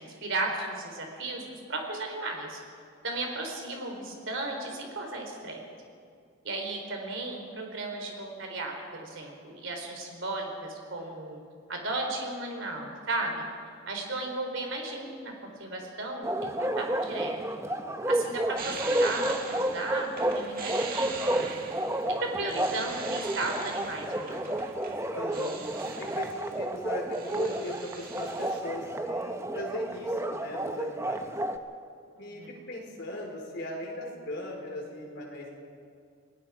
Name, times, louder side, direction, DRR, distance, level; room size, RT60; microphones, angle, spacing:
voice 1, 0.0-2.6 3.0-5.6 6.4-11.4 11.7-13.5 13.9-15.3 15.6-17.4 18.1-21.6 22.1-24.6 32.2-32.5, right 2 dB, 55° right, 2 dB, 4.0 m, -35 dB
Bark, 16.2-31.6, right 1 dB, 10° right, 0.8 m, -31 dB
voice 2, 17.6-18.2 25.2-25.6 26.0-31.2 32.2-32.4 32.7-35.6, left 1 dB, 50° left, 0 dB, 4.3 m, -39 dB
sound 1, 18.6-26.5 26.9-28.6, right 4 dB, 40° right, 1.9 m, -42 dB
29.0 x 19.0 x 4.9 m, 2.3 s
head